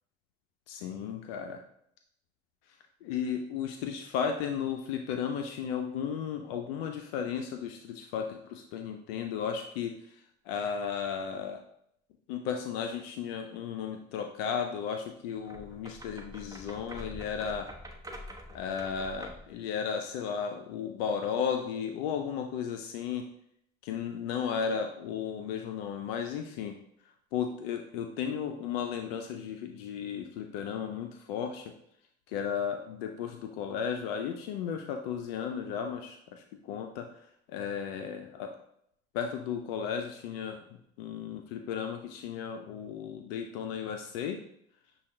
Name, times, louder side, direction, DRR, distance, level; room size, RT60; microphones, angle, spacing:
voice 1, 0.7-1.6 3.0-11.6 12.3-17.7 18.5-23.2 23.8-26.8 27.3-31.7 32.3-38.5 39.1-40.6 41.0-44.4, left 7 dB, 85° left, 5 dB, 0.5 m, -34 dB
sound 1, 15.4-19.5, equal, 10° right, 0.9 m, -45 dB
6.8 x 2.3 x 3.2 m, 0.72 s
hypercardioid pair, 60°, 29 cm